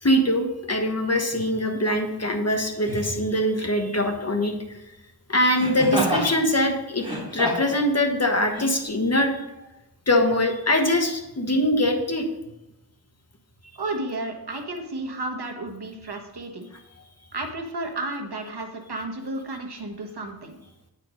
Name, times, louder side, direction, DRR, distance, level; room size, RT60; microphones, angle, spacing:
voice 1, 0.0-4.5 5.3-7.1 7.3-9.7 10.1-12.3, left 1 dB, 40° left, 4 dB, 1.2 m, -23 dB
Laughter, 1.3-1.5 2.8-3.2 5.5-6.3 6.9-7.8 8.5-8.6, equal, 10° right, 2.6 m, -28 dB
voice 2, 13.7-16.7 17.3-20.6, right 2 dB, 75° right, 3 dB, 1.3 m, -32 dB
8.4 x 4.4 x 5.1 m, 0.97 s
wide cardioid pair, 60°, 40 cm